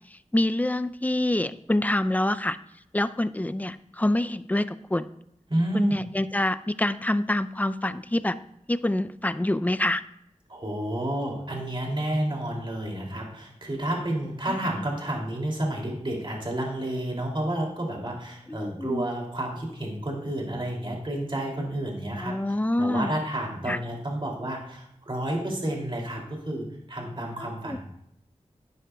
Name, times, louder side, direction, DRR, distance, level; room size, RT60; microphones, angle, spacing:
voice 1, 0.3-2.6 2.9-5.1 5.7-8.4 8.7-10.0 14.5-14.6 18.5-19.1 22.2-23.1 23.7-23.8 27.4-27.8, left 1 dB, 15° left, 14 dB, 0.4 m, -26 dB
voice 2, 5.5-6.0 10.5-22.4 22.8-27.8, right 1 dB, 40° right, -1 dB, 2.7 m, -30 dB
11.5 x 9.9 x 2.3 m, 0.77 s
wide cardioid pair, 55°, 12 cm